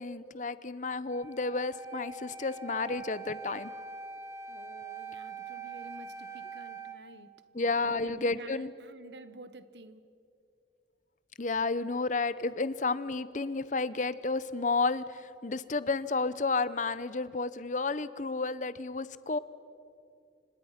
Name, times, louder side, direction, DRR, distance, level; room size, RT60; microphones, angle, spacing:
voice 1, 0.0-3.7 7.5-8.7 11.4-19.4, left 3 dB, 40° left, 15 dB, 0.7 m, -31 dB
Wind instrument woodwind instrument, 1.1-7.0, right 4 dB, 15° right, 1.6 m, -43 dB
voice 2, 4.5-10.1, right 2 dB, 70° right, 13 dB, 1.2 m, -51 dB
29.5 x 26.0 x 5.8 m, 2.6 s
head